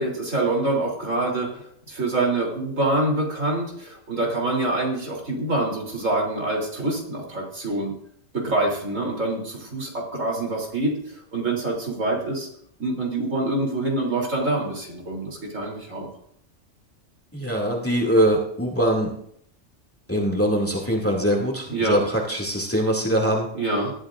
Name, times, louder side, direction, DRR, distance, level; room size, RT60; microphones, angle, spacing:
voice 1, 0.0-8.0 8.3-10.9 11.3-12.5 12.8-16.1 21.7-22.0 23.5-23.9, right 2 dB, 75° right, -1 dB, 3.8 m, -25 dB
voice 2, 17.3-19.2 20.1-23.5, equal, 10° left, -1 dB, 2.4 m, -22 dB
18.5 x 12.5 x 2.6 m, 0.68 s
omnidirectional pair, 1.4 m